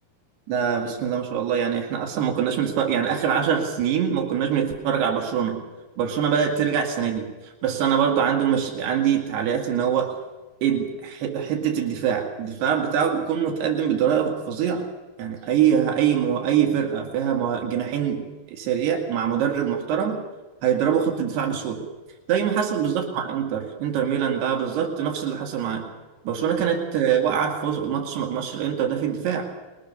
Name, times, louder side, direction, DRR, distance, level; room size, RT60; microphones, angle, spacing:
voice 1, 0.5-5.6 6.0-10.1 10.6-14.9 15.2-20.2 20.6-21.8 22.3-25.8 26.3-29.5, right 8 dB, 85° right, 2 dB, 4.4 m, -24 dB
24.0 x 21.5 x 6.8 m, 1.2 s
omnidirectional pair, 4.6 m